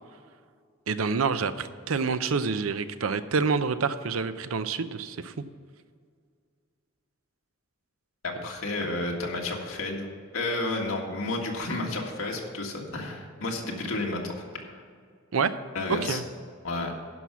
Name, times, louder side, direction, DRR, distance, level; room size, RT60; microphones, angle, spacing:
voice 1, 0.9-5.3 15.3-15.6 16.0-16.2, right 5 dB, 85° right, 12 dB, 0.6 m, -27 dB
voice 2, 8.2-10.1 10.3-14.8 15.7-16.2 16.6-16.9, left 2 dB, 85° left, 0 dB, 1.9 m, -31 dB
11.0 x 5.8 x 6.9 m, 2.1 s
head